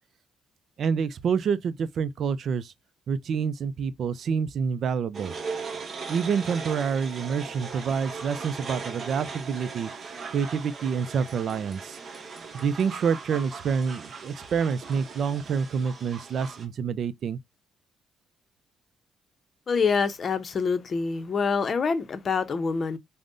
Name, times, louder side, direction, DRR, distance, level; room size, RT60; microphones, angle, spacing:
voice 1, 0.8-2.7 3.1-5.3 6.1-9.9 10.3-12.0 12.5-17.4, right 6 dB, 60° right, 0.3 m, -27 dB
sound 1, 5.1-16.7, right 4 dB, 45° right, 0.8 m, -39 dB
voice 2, 19.7-23.0, left 5 dB, 45° left, 0.6 m, -26 dB
5.1 x 2.1 x 2.5 m
cardioid pair, 90°, 0 cm